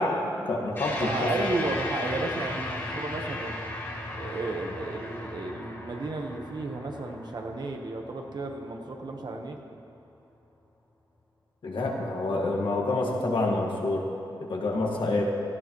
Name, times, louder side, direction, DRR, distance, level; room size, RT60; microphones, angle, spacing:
voice 1, 0.0-1.3 11.6-14.1 14.5-15.2, left 2 dB, 75° left, -1 dB, 1.9 m, -27 dB
sound 1, 0.8-9.4, left 2 dB, 30° left, 2.7 m, -36 dB
voice 2, 1.0-3.6 4.2-9.6, right 2 dB, 55° right, 3 dB, 1.2 m, -33 dB
17.5 x 15.0 x 3.2 m, 2.9 s
wide cardioid pair, 145°, 8 cm